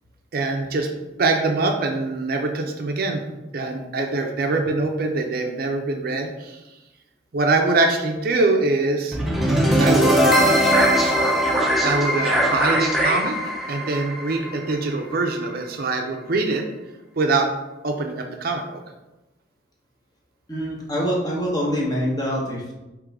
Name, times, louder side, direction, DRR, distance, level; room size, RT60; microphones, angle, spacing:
voice 1, 0.3-0.9 1.2-6.6 7.3-9.2 9.8-10.7 11.8-13.4 13.7-16.6 17.2-17.5 17.8-18.8, right 3 dB, 50° right, 3 dB, 0.5 m, -23 dB
sound 1, 9.1-15.2, equal, ahead, 0.6 m, -20 dB
voice 2, 20.5-22.7, equal, 20° left, -4 dB, 1.0 m, -25 dB
3.7 x 3.1 x 4.6 m, 1.0 s
head